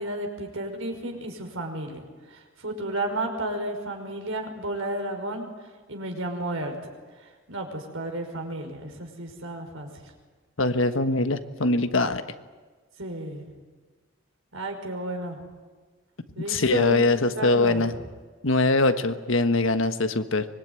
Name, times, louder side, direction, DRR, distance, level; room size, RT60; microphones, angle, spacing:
voice 1, 0.0-2.0 2.3-5.5 5.9-6.7 7.5-9.9 13.0-13.4 14.5-15.4 16.4-17.1 17.4-17.8, right 1 dB, 75° right, 4 dB, 5.4 m, -32 dB
voice 2, 10.6-12.2 16.5-17.9 18.4-20.5, left 2 dB, 75° left, 9 dB, 1.5 m, -22 dB
25.0 x 21.5 x 9.7 m, 1.4 s
head